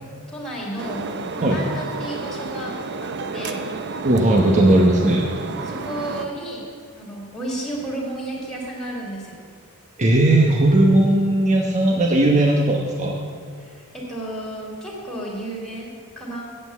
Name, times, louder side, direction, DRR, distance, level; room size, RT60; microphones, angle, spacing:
voice 1, 0.3-2.7 3.0-3.7 5.6-6.7 7.0-9.4 13.6-16.5, right 1 dB, 5° left, -5 dB, 2.6 m, -32 dB
sound 1, 0.8-6.3, right 3 dB, 55° right, 0.6 m, -31 dB
voice 2, 4.0-5.3 10.0-13.2, right 1 dB, 35° right, -1 dB, 1.0 m, -17 dB
8.6 x 7.7 x 8.2 m, 2.2 s
head